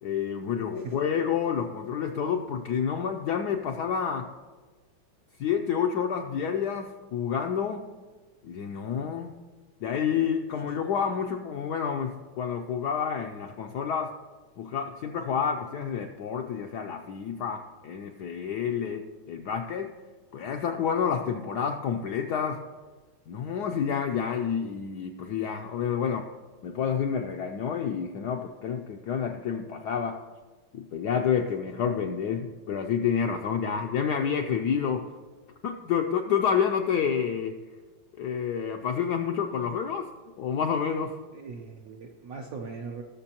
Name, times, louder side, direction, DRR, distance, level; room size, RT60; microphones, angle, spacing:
voice 1, 0.0-4.3 5.4-7.8 8.4-9.3 9.8-14.1 14.6-19.9 20.3-22.6 23.3-26.3 26.6-30.2 30.7-35.1 35.6-37.6 38.2-40.1 40.3-41.1, left 7 dB, 80° left, 4 dB, 0.9 m, -29 dB
voice 2, 41.3-43.0, right 4 dB, 70° right, 2 dB, 0.8 m, -40 dB
18.5 x 6.8 x 2.9 m, 1.3 s
omnidirectional pair, 2.3 m